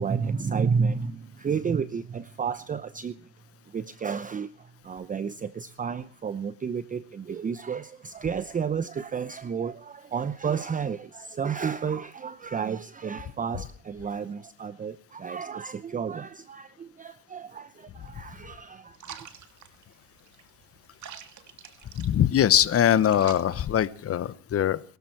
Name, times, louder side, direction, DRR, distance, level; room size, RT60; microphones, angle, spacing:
voice 1, 0.0-3.2 3.7-19.3, right 6 dB, 20° right, 14 dB, 0.8 m, -31 dB
sound 1, 18.9-24.3, right 8 dB, 40° right, 2.7 m, -47 dB
voice 2, 21.9-24.8, left 10 dB, 30° left, 16 dB, 1.1 m, -22 dB
22.5 x 13.5 x 4.7 m, 0.42 s
supercardioid pair, 100°, 45 cm